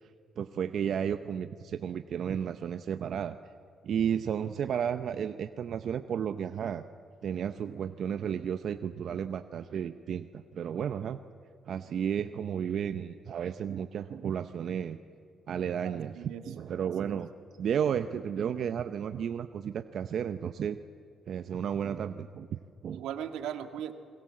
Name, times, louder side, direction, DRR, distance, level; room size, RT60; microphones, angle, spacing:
voice 1, 0.4-3.4 3.8-6.8 7.2-11.2 11.7-15.0 15.5-16.2 16.5-17.3 17.6-20.8 21.3-23.0, right 8 dB, 65° right, 10 dB, 0.8 m, -33 dB
voice 2, 15.8-16.4 16.8-17.2 22.9-23.9, right 10 dB, 90° right, 7 dB, 1.8 m, -39 dB
28.0 x 22.0 x 7.6 m, 2.5 s
cardioid pair, 90°, 0 cm